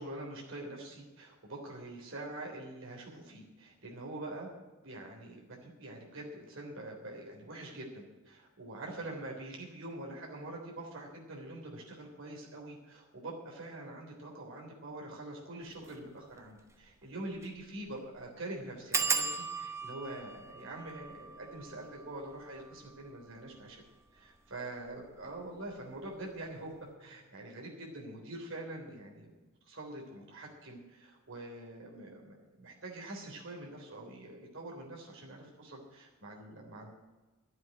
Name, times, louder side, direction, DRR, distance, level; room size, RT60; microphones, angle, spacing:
voice 1, 0.0-4.5 4.8-23.8 24.1-26.7 27.0-29.3 29.6-36.9, right 2 dB, 60° right, -2 dB, 3.5 m, -45 dB
sound 1, 15.8-16.0 16.4-16.5 16.7-16.8 17.3-17.6 17.9-18.0 18.9-24.2 24.9-25.4 25.7-26.1 26.3-26.4, right 4 dB, 15° right, 0.8 m, -38 dB
12.0 x 7.7 x 10.0 m, 1.2 s
head